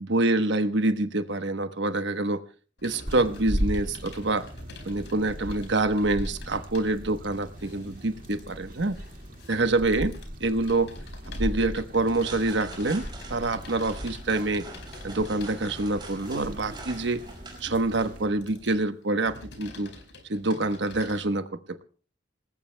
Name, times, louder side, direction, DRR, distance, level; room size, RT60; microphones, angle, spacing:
voice 1, 0.0-2.4 2.8-4.5 4.8-9.0 9.5-10.9 11.4-13.0 13.3-14.7 15.0-17.2 17.6-19.9 20.3-21.8, right 2 dB, 65° right, 9 dB, 1.1 m, -26 dB
Computer keyboard, 2.8-21.2, left 2 dB, 65° left, 4.8 m, -48 dB
sound 1, 3.0-18.3, equal, 45° right, 2.1 m, -37 dB
sound 2, 11.9-18.7, right 2 dB, 25° right, 5.4 m, -45 dB
26.0 x 19.5 x 2.2 m, 0.38 s
head